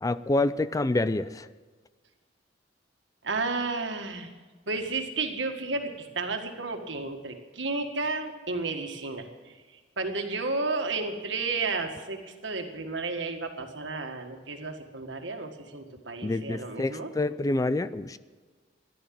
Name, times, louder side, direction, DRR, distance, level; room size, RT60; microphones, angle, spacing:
voice 1, 0.0-1.5 16.2-18.2, left 2 dB, 20° left, 14 dB, 0.4 m, -27 dB
voice 2, 3.2-4.3 4.7-9.5 10.0-17.1, right 3 dB, 90° right, 4 dB, 1.8 m, -32 dB
14.0 x 11.0 x 7.6 m, 1.4 s
head